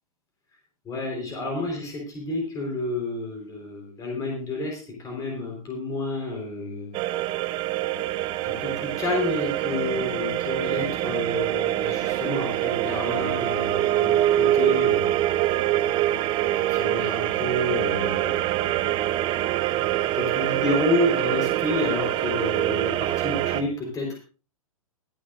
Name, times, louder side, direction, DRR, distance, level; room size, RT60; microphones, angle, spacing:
voice 1, 0.8-6.9 8.4-15.1 16.4-18.4 20.1-24.2, left 2 dB, 20° left, 0 dB, 4.3 m, -30 dB
sound 1, 6.9-23.6, right 14 dB, 30° right, 1.1 m, -25 dB
24.0 x 8.8 x 2.6 m, 0.34 s
figure-of-eight pair, 120°, 18 cm